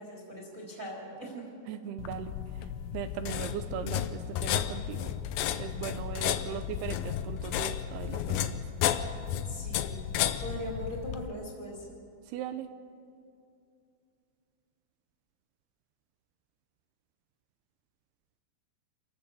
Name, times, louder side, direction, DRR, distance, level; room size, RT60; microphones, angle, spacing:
voice 1, 0.0-1.4 5.9-6.4 9.4-10.1 10.4-11.9, equal, 20° right, -1 dB, 3.3 m, -41 dB
voice 2, 1.7-2.4 2.9-5.1 5.6-8.6 12.3-12.7, right 10 dB, 80° right, 10 dB, 2.5 m, -38 dB
sound 1, 2.0-11.3, left 10 dB, 85° left, 2.0 m, -33 dB
27.5 x 15.0 x 7.0 m, 2.5 s
omnidirectional pair, 5.0 m